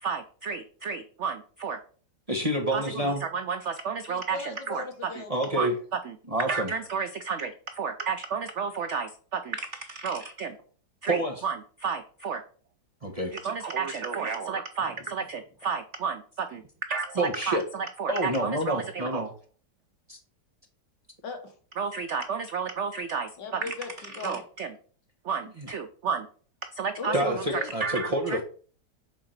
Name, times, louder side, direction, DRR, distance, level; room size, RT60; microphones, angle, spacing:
voice 1, 0.0-1.8 2.7-4.8 5.2-5.3 5.5-5.7 6.0-6.2 6.5-10.6 11.0-12.4 13.3-16.6 16.9-19.2 21.8-23.7 24.2-24.7 25.2-26.3 26.7-28.4, right 5 dB, 80° right, 8 dB, 0.6 m, -32 dB
voice 2, 2.3-3.2 5.3-5.7 6.3-6.7 11.1-11.3 13.0-13.3 17.2-17.6 18.1-19.3 20.1-20.2 25.6-25.7 27.1-28.4, right 1 dB, 25° right, 2 dB, 0.9 m, -28 dB
voice 3, 4.1-5.5 21.2-21.5 23.4-24.4 27.0-27.7, left 4 dB, 75° left, 5 dB, 2.0 m, -37 dB
7.0 x 3.8 x 5.7 m, 0.43 s
omnidirectional pair, 1.9 m